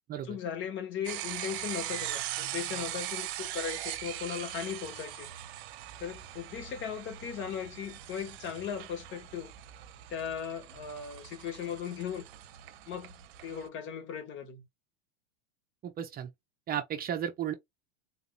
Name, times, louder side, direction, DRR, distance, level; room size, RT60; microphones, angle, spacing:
voice 1, 0.3-5.3 6.0-9.5 10.1-12.2 12.9-13.2 13.4-14.6, left 8 dB, 40° left, 1.5 m, -37 dB
sound 1, 1.0-13.7, right 13 dB, 60° right, 0.8 m, -41 dB
voice 2, 15.8-16.3 16.7-17.5, right 10 dB, 30° right, 0.7 m, -34 dB
3.9 x 2.6 x 2.5 m
hypercardioid pair, 110°, 30 cm